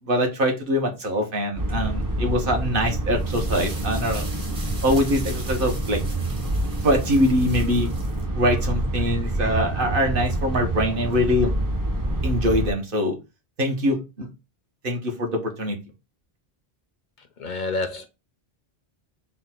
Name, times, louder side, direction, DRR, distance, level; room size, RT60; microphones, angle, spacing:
voice 1, 0.0-4.3 4.8-6.0 6.8-7.9 8.3-11.5 12.2-13.1 13.6-14.3 14.8-15.8, equal, 60° right, 1.2 m, -23 dB
sound 1, 1.5-12.7, right 2 dB, 25° right, 0.6 m, -27 dB
sound 2, 3.1-8.2, right 2 dB, 40° right, 1.2 m, -41 dB
voice 2, 17.2-18.1, left 3 dB, 55° left, 0.6 m, -29 dB
4.1 x 2.2 x 4.2 m
omnidirectional pair, 1.0 m